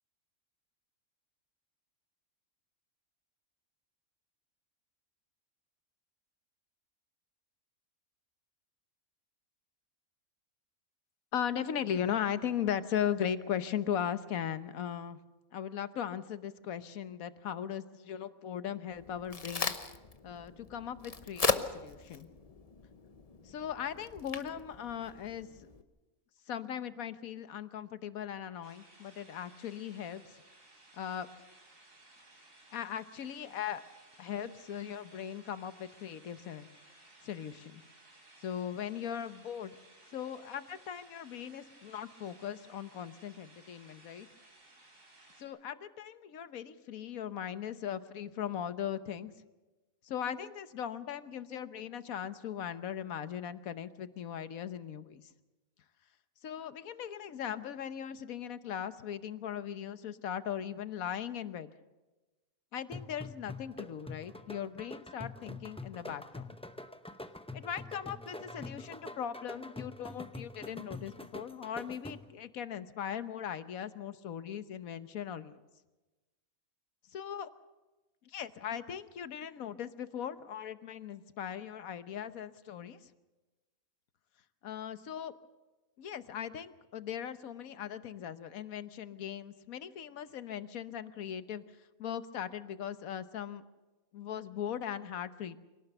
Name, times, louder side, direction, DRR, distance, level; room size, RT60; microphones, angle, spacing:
voice 1, 11.3-15.2 15.5-19.7 20.2-22.3 23.4-25.5 26.5-30.4 30.9-31.3 32.7-33.8 34.2-36.7 37.2-37.8 38.4-39.7 40.1-44.3 45.4-49.3 50.0-55.3 56.4-61.7 62.7-66.5 67.5-75.6 77.1-77.5 78.2-83.1 84.6-85.3 86.0-91.6 92.0-93.6 94.1-95.6, left 9 dB, 85° left, 12 dB, 1.4 m, -38 dB
Crack, 18.9-25.8, left 4 dB, 30° left, 0.9 m, -38 dB
sound 1, 28.6-45.4, right 2 dB, 70° right, 4.0 m, -59 dB
sound 2, 62.9-72.5, left 2 dB, 10° left, 0.4 m, -45 dB
24.5 x 18.0 x 6.7 m, 1.1 s
omnidirectional pair, 1.4 m